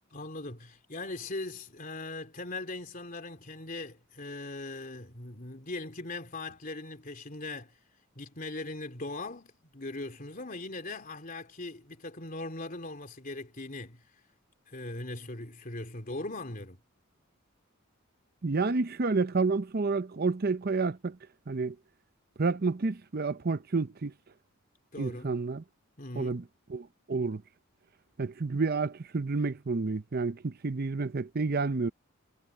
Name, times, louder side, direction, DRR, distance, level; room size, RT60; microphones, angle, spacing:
voice 1, 0.1-7.8 8.2-14.0 14.7-16.8 24.9-25.3 26.0-26.4, left 2 dB, 40° left, 3.4 m, -40 dB
voice 2, 18.4-21.2 21.5-21.7 22.4-24.1 25.0-25.6 26.2-26.4 26.7-27.4 28.2-31.9, right 4 dB, 45° right, 0.6 m, -29 dB
head